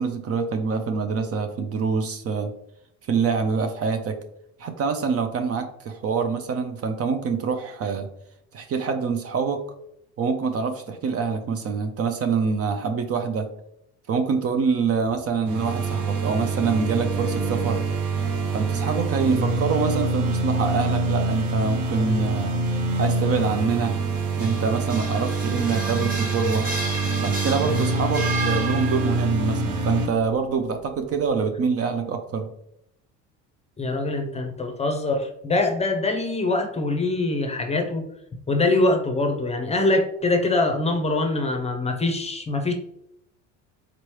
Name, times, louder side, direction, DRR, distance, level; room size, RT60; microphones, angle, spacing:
voice 1, 0.0-2.5 3.1-4.2 4.6-8.1 8.5-9.6 10.2-13.5 14.1-17.8 18.5-22.5 23.0-24.0 24.4-26.7 27.2-32.5, right 5 dB, 40° right, 6 dB, 0.5 m, -25 dB
sound 1, 15.5-30.1, right 3 dB, 55° right, 0.9 m, -25 dB
sound 2, 24.2-29.3, right 3 dB, 25° right, 1.4 m, -32 dB
voice 2, 33.8-38.1 38.5-42.7, left 2 dB, 15° left, 4 dB, 0.7 m, -23 dB
4.0 x 3.0 x 3.1 m, 0.76 s
supercardioid pair, 90°, 37 cm